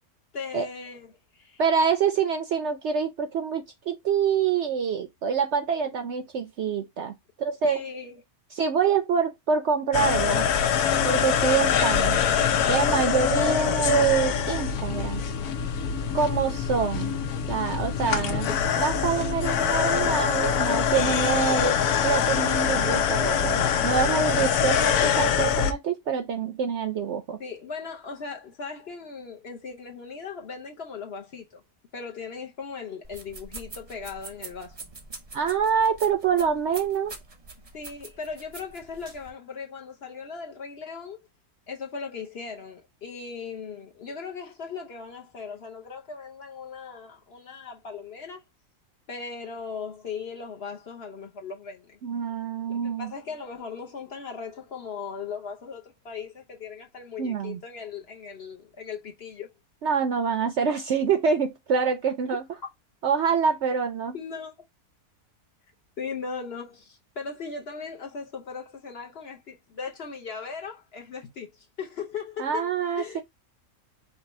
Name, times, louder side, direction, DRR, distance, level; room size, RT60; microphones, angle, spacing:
voice 1, 0.3-1.6 7.6-8.2 18.0-18.3 27.4-31.6 31.9-34.8 37.7-41.2 41.7-48.4 49.1-52.0 52.7-59.5 62.3-62.4 64.1-64.6 66.0-73.2, left 5 dB, 55° left, 0.8 m, -38 dB
voice 2, 1.6-7.8 8.5-10.5 11.0-12.2 12.7-15.2 16.1-17.1 17.5-27.4 35.3-37.1 52.0-53.1 57.2-57.6 59.8-62.4 63.0-64.2 72.4-73.2, right 6 dB, 65° right, 0.7 m, -26 dB
sound 1, 9.9-25.7, left 8 dB, 90° left, 1.2 m, -24 dB
sound 2, 33.0-39.3, right 3 dB, 30° right, 0.7 m, -44 dB
5.3 x 2.2 x 4.1 m
omnidirectional pair, 1.6 m